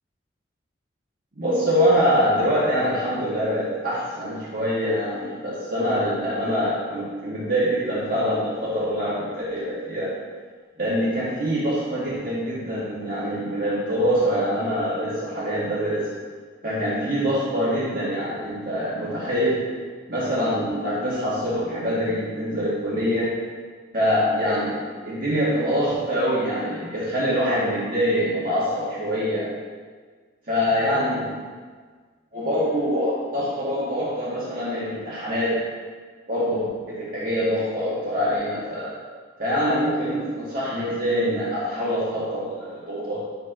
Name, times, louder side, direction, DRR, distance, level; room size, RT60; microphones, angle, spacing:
voice 1, 1.4-10.1 10.8-16.1 16.6-19.6 20.1-23.3 23.9-24.8 25.1-29.5 30.5-31.5 32.3-35.6 36.3-38.9 39.4-43.2, equal, 45° right, -9 dB, 2.0 m, -24 dB
11.0 x 7.9 x 3.0 m, 1.5 s
head